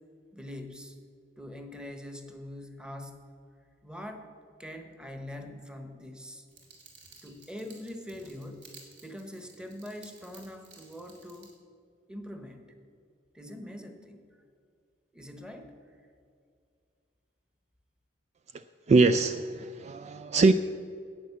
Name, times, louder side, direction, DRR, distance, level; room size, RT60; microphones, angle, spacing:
voice 1, 0.3-1.0 1.4-3.3 3.8-4.3 4.6-6.4 7.2-11.5 12.1-12.6 13.3-14.2 15.1-15.7, left 1 dB, 5° right, 1.0 m, -43 dB
sound 1, 6.5-11.5, right 4 dB, 65° right, 2.4 m, -55 dB
voice 2, 18.5-20.5, right 3 dB, 35° right, 0.3 m, -23 dB
10.5 x 8.6 x 7.2 m
head